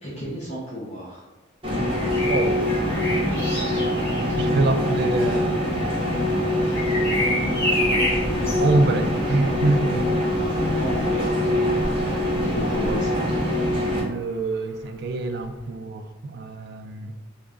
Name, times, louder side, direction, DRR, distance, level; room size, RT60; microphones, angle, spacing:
voice 1, 0.0-1.2 10.8-11.7 12.4-13.4, equal, 35° left, -9 dB, 0.7 m, -33 dB
sound 1, 1.6-14.0, left 1 dB, 25° right, 0.8 m, -23 dB
Bird vocalization bird call bird song, 1.8-13.7 15.4-15.6, left 1 dB, 10° left, 1.2 m, -32 dB
voice 2, 2.2-2.6 4.4-5.9 8.6-10.0 14.0-17.1, right 2 dB, 55° right, 7 dB, 0.3 m, -25 dB
3.0 x 2.4 x 3.6 m, 1.1 s
head